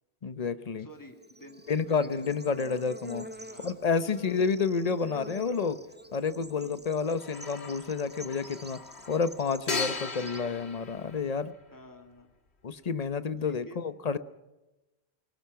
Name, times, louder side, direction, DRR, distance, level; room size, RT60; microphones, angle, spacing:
voice 1, 0.2-0.9 1.7-3.3 3.6-5.8 6.1-8.8 9.1-11.5 12.6-14.2, left 5 dB, 40° left, 12 dB, 1.0 m, -29 dB
voice 2, 0.8-2.5 3.5-3.7 4.1-4.2 6.6-6.9 11.7-12.3 13.4-13.9, left 1 dB, 20° left, 4 dB, 2.3 m, -50 dB
Bird / Insect, 0.9-11.5, right 1 dB, 15° right, 0.6 m, -48 dB
sound 1, 4.3-4.5 7.0-11.8, left 4 dB, 85° left, 1.8 m, -38 dB
24.0 x 19.0 x 5.8 m, 1.0 s
omnidirectional pair, 1.1 m